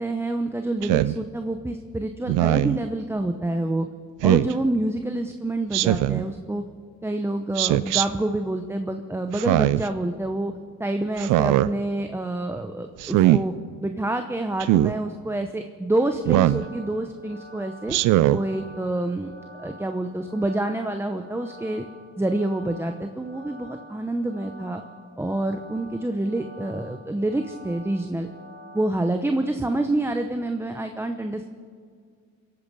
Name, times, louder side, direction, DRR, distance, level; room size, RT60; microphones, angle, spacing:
voice 1, 0.0-3.9 4.2-6.6 7.0-10.5 10.8-13.5 13.8-18.0 18.3-19.3 19.6-21.8 22.2-24.8 25.2-28.3 28.7-31.5, right 1 dB, 10° right, 6 dB, 0.8 m, -27 dB
Speech synthesizer, 0.8-1.2 2.3-2.8 4.2-4.5 5.7-6.2 7.6-8.1 9.3-9.9 11.2-11.7 13.0-13.4 14.6-14.9 16.3-16.7 17.9-18.4, right 15 dB, 90° right, 0.5 m, -20 dB
sound 1, 16.0-28.9, equal, 30° right, 2.7 m, -47 dB
24.5 x 8.7 x 5.4 m, 2.1 s
cardioid pair, 90°, 30 cm